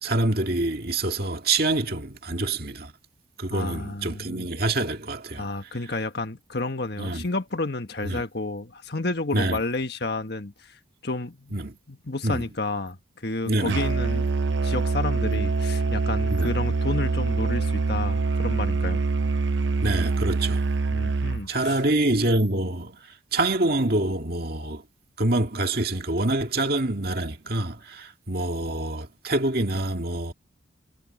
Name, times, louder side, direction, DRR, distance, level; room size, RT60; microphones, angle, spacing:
voice 1, 0.0-2.9 3.4-5.5 7.0-7.3 8.0-8.2 9.3-9.6 11.5-11.8 12.2-12.5 13.5-13.8 16.3-16.5 19.8-20.6 21.5-23.0 23.3-24.8 25.2-30.3, right 2 dB, 50° right, 2.2 m, -26 dB
voice 2, 3.5-4.5 5.4-10.8 11.0-11.6 11.9-14.3 14.6-19.0 20.9-21.8, left 2 dB, 55° left, 1.5 m, -31 dB
Musical instrument, 13.7-21.5, right 3 dB, 70° right, 0.6 m, -25 dB
head